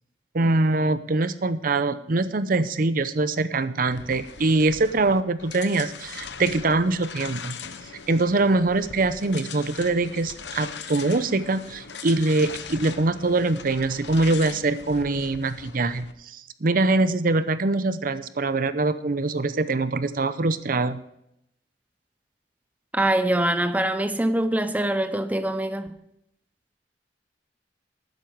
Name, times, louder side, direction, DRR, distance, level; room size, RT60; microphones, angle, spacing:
voice 1, 0.3-7.6 8.1-21.0, right 2 dB, 50° right, 0.7 m, -23 dB
sound 1, 3.9-16.1, left 6 dB, 75° left, 1.0 m, -40 dB
voice 2, 22.9-25.9, right 1 dB, 10° right, 0.6 m, -24 dB
12.5 x 9.4 x 4.6 m
head